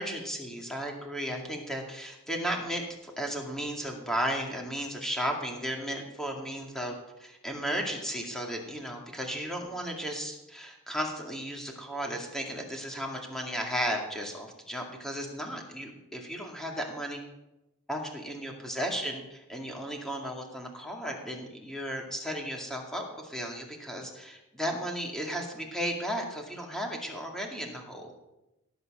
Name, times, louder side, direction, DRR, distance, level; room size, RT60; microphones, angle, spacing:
voice 1, 0.0-17.2 17.9-28.1, equal, ahead, 0 dB, 2.2 m, -35 dB
17.0 x 8.2 x 6.6 m, 0.95 s
head